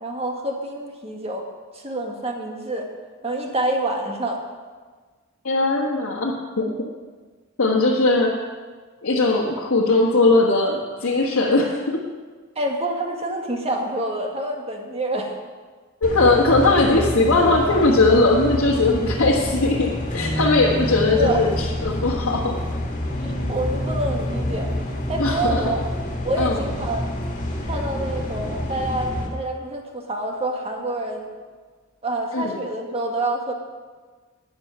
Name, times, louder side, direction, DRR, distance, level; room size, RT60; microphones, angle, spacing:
voice 1, 0.0-1.4 1.7-2.9 3.2-4.4 12.5-15.3 21.2-21.5 23.2-25.8 26.2-27.0 27.6-31.3 32.0-33.5, right 1 dB, 30° right, 2 dB, 1.6 m, -27 dB
voice 2, 5.4-6.7 7.6-8.3 9.0-12.0 16.0-21.5 21.8-22.6 25.2-25.6 26.4-26.6 32.3-32.5, left 2 dB, 75° left, -4 dB, 1.5 m, -19 dB
sound 1, 16.0-29.3, left 1 dB, 40° left, 2.0 m, -28 dB
sound 2, 20.0-28.8, equal, 5° right, 4.6 m, -33 dB
12.5 x 9.6 x 5.6 m, 1.4 s
head